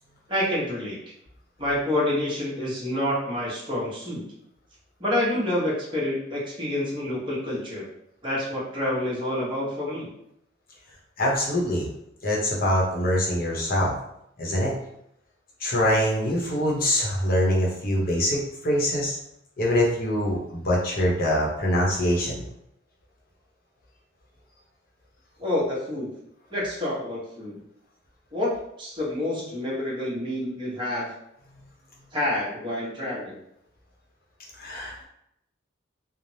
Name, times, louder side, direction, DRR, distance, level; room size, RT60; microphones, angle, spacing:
voice 1, 0.3-1.0 1.6-4.2 5.0-7.9 8.2-10.1 25.4-26.1 26.5-27.6 28.3-31.1 32.1-33.4, left 1 dB, 25° right, -6 dB, 0.9 m, -28 dB
voice 2, 11.2-11.9 12.2-13.9 14.4-14.7 15.6-19.2 19.6-22.4 34.6-35.1, equal, 50° left, -3 dB, 0.8 m, -24 dB
3.2 x 2.0 x 2.7 m, 0.77 s
head